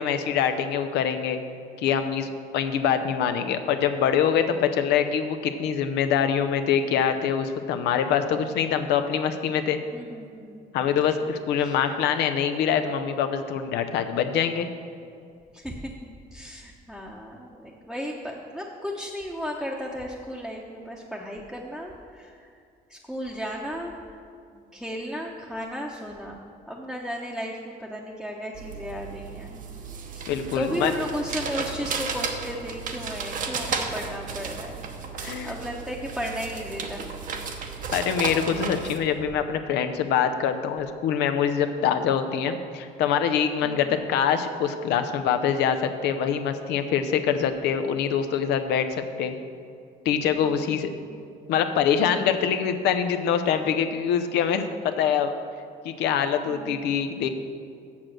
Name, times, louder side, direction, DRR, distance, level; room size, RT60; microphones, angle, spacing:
voice 1, 0.0-1.4 1.8-9.8 10.7-14.7 30.3-30.9 35.2-35.5 37.9-48.9 49.2-49.3 50.0-50.9 51.5-55.3 55.8-57.3, left 8 dB, 85° left, 8 dB, 0.7 m, -24 dB
voice 2, 9.9-10.7 11.0-11.3 11.6-11.8 15.5-15.9 16.3-22.5 22.9-24.2 24.5-29.6 30.5-34.8 35.1-37.1 43.6-44.0 50.4-51.2 56.5-57.0, equal, ahead, -3 dB, 0.9 m, -35 dB
sound 1, 28.5-39.0, right 5 dB, 50° right, 0.9 m, -34 dB
7.2 x 6.4 x 7.5 m, 2.4 s
cardioid pair, 110°, 17 cm